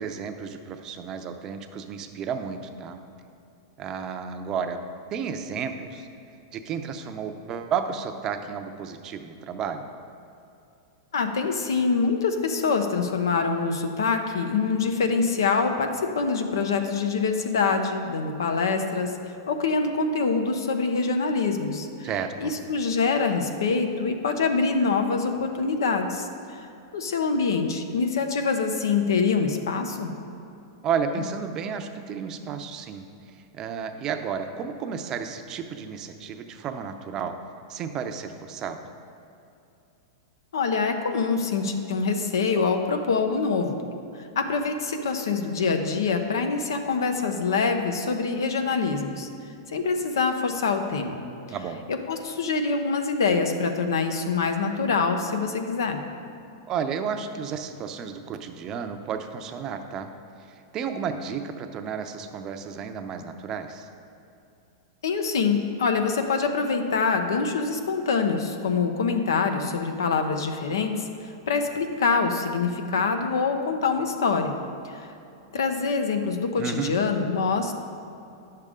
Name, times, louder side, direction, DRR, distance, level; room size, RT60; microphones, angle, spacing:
voice 1, 0.0-3.0 3.8-4.8 5.1-6.1 6.5-9.9 22.0-22.5 30.8-33.0 33.5-37.3 37.7-38.8 51.5-51.8 56.7-60.1 60.7-63.9 76.6-77.0, right 6 dB, 30° right, 7 dB, 0.5 m, -32 dB
voice 2, 11.1-19.1 19.5-22.1 22.4-26.7 26.9-30.1 40.5-43.8 44.3-49.3 49.7-51.2 51.5-51.6 51.9-56.0 65.0-71.1 71.5-74.5 74.8-75.1 75.5-77.7, left 4 dB, 90° left, 6 dB, 0.8 m, -25 dB
9.6 x 6.7 x 3.7 m, 2.7 s
supercardioid pair, 140°, 2 cm